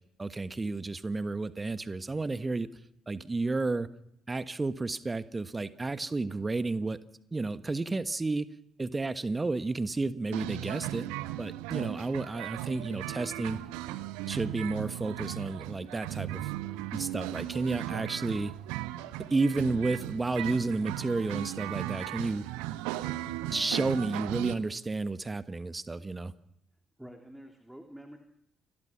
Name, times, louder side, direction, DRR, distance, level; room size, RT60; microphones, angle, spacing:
voice 1, 0.2-2.7 3.1-3.9 4.3-7.0 7.3-8.5 8.8-11.1 11.4-13.6 14.3-16.5 16.9-18.5 19.3-22.4 23.5-26.3, right 3 dB, 20° right, 13 dB, 1.4 m, -31 dB
sound 1, 10.3-24.5, right 15 dB, 65° right, 1.0 m, -37 dB
voice 2, 27.0-28.2, equal, 5° right, 4 dB, 3.3 m, -47 dB
29.0 x 21.5 x 6.0 m, 0.78 s
figure-of-eight pair, 45°, 0 cm